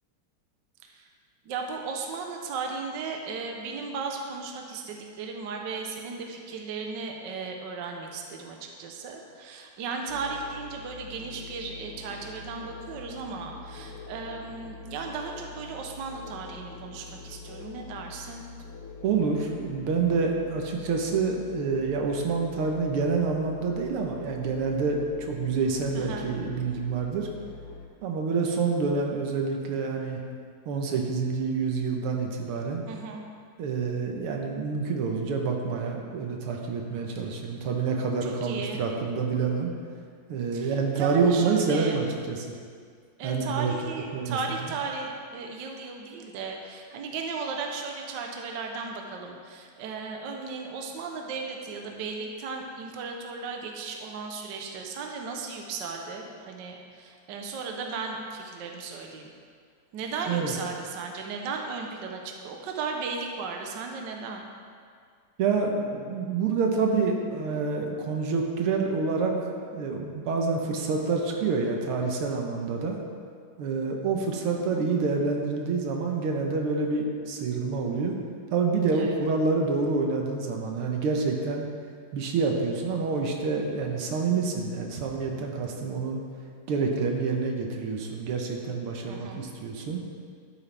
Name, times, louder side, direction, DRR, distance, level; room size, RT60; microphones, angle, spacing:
voice 1, 1.4-18.5 25.9-26.3 32.9-33.2 37.1-37.3 38.2-38.8 40.5-42.0 43.2-59.3 59.9-64.5 78.9-79.2 89.1-89.5, right 4 dB, 60° right, 2 dB, 1.4 m, -36 dB
sound 1, 10.1-27.9, left 4 dB, 75° left, 2.1 m, -44 dB
voice 2, 19.0-27.3 28.0-30.2 30.7-32.8 33.6-39.7 40.3-42.5 43.2-43.7 44.1-44.4 60.3-60.5 65.4-73.0 73.6-78.2 78.5-81.7 82.1-86.2 86.7-90.0, right 4 dB, 80° right, 1 dB, 2.0 m, -27 dB
12.5 x 8.7 x 3.4 m, 2.1 s
omnidirectional pair, 2.4 m